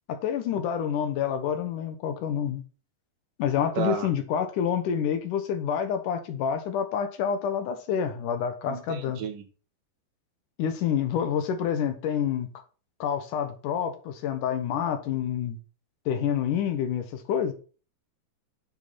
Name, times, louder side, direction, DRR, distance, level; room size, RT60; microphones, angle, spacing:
voice 1, 0.1-2.6 3.4-9.2 10.6-12.5 13.0-15.6 16.1-17.5, left 8 dB, 75° left, 2.7 m, -28 dB
voice 2, 3.8-4.1 8.7-9.4, right 7 dB, 90° right, 3.2 m, -32 dB
9.9 x 5.5 x 4.1 m
omnidirectional pair, 3.7 m